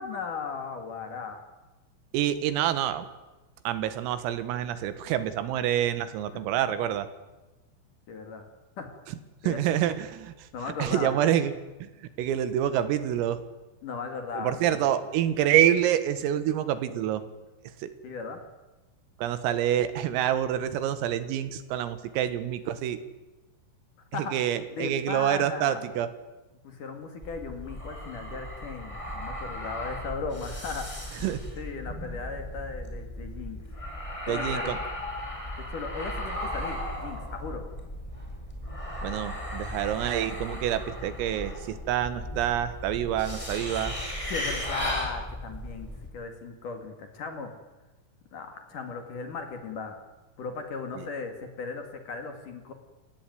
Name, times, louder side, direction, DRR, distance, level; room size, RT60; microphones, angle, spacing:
voice 1, 0.0-1.4 8.1-8.4 8.8-8.9 9.4-9.6 10.5-11.2 13.8-14.8 18.0-18.4 24.1-24.4 24.7-25.8 26.6-31.2 31.6-33.6 34.2-34.7 35.7-37.6 44.3-47.5 48.3-50.0 50.4-52.7, left 4 dB, 50° left, 6 dB, 3.2 m, -37 dB
voice 2, 2.1-3.1 3.7-7.1 9.5-10.3 10.8-11.5 11.8-13.4 14.4-17.2 17.8-17.9 19.2-23.0 24.1-26.1 31.2-31.4 34.3-34.8 39.0-44.0 51.0-51.1, right 11 dB, 85° right, 12 dB, 4.3 m, -27 dB
sound 1, 27.2-46.1, left 1 dB, 5° left, 4.0 m, -36 dB
29.0 x 16.5 x 9.4 m, 1.1 s
omnidirectional pair, 5.9 m